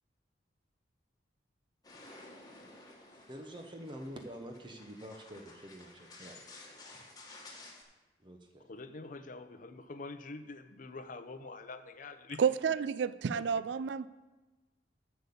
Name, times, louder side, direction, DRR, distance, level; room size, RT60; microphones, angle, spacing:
sound 1, 1.8-7.8, left 2 dB, 20° left, 1.4 m, -53 dB
voice 1, 3.1-6.5 8.2-8.7, equal, 25° right, 4 dB, 0.8 m, -47 dB
voice 2, 8.7-12.4 13.3-13.4, left 3 dB, 45° left, 10 dB, 0.6 m, -45 dB
voice 3, 12.4-14.1, right 6 dB, 70° right, 16 dB, 0.4 m, -30 dB
7.9 x 6.8 x 7.0 m, 1.2 s
head